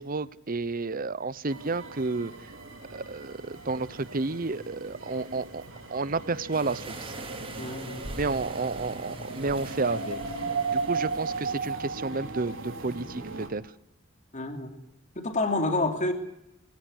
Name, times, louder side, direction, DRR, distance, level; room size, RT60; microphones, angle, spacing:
voice 1, 0.0-2.3 2.9-5.6 5.9-7.1 8.2-10.2 10.7-13.6, right 3 dB, 45° right, 18 dB, 0.9 m, -31 dB
sound 1, 1.5-13.5, right 4 dB, 65° right, 4.6 m, -36 dB
sound 2, 6.5-11.5, right 2 dB, 30° right, 4.2 m, -42 dB
voice 2, 7.6-8.1 14.3-14.8 15.1-16.1, left 2 dB, 35° left, 6 dB, 3.0 m, -28 dB
22.5 x 16.5 x 9.8 m, 0.84 s
head